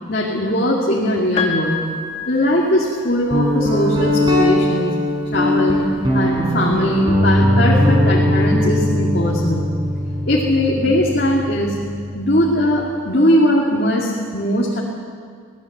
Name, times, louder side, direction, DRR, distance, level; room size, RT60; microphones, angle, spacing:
voice 1, 0.1-1.9 2.3-4.9 5.2-5.8 6.1-9.8 10.3-11.8 12.1-14.8, left 1 dB, 50° left, -3 dB, 2.5 m, -19 dB
Piano, 1.4-3.4 4.6-4.7, left 5 dB, 25° left, 1.6 m, -27 dB
Guitar, 3.3-12.8, left 1 dB, 20° right, 5.6 m, -19 dB
22.5 x 17.5 x 8.0 m, 2.1 s
head